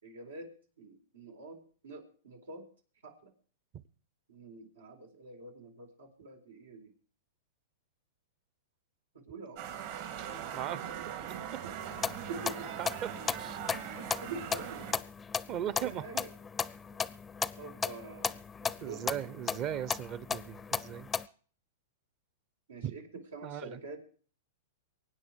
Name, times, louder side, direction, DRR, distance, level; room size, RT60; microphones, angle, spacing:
voice 1, 0.0-2.7 3.0-3.3 4.3-6.9 9.1-9.7 11.6-11.7 12.1-12.7 14.0-14.8 15.7-16.3 17.6-19.3 22.7-24.0, right 3 dB, 85° right, 3 dB, 4.3 m, -46 dB
sound 1, 9.6-14.9, right 9 dB, 55° right, 3.3 m, -41 dB
voice 2, 10.5-11.0 12.8-13.6 15.5-16.3 18.8-21.1 22.8-23.8, right 10 dB, 35° right, 19 dB, 0.9 m, -38 dB
sound 2, 11.8-21.3, left 6 dB, 15° left, 0.6 m, -36 dB
23.5 x 9.6 x 4.6 m, 0.44 s
hypercardioid pair, 120°, 0 cm